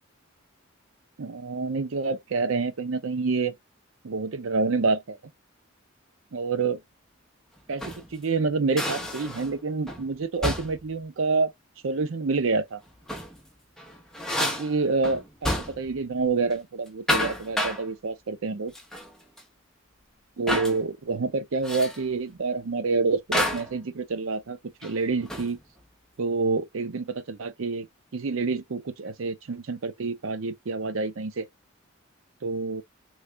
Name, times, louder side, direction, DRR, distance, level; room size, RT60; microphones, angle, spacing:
voice 1, 1.2-3.5 4.0-5.2 6.3-6.8 7.7-11.5 11.8-12.8 14.4-15.5 15.8-18.7 20.4-25.6 26.2-27.9 28.1-31.4 32.4-32.8, right 4 dB, 70° right, 0.6 m, -27 dB
sound 1, 7.6-8.1 8.8-9.6 9.9-10.1 10.4-10.9 12.9-13.4 13.8-16.0 16.3-16.5 16.9-17.9 18.8-19.1 19.4-19.5 20.5-20.8 21.6-22.0 23.3-23.8 24.8-25.6, left 1 dB, ahead, 0.7 m, -30 dB
3.2 x 2.4 x 3.2 m
head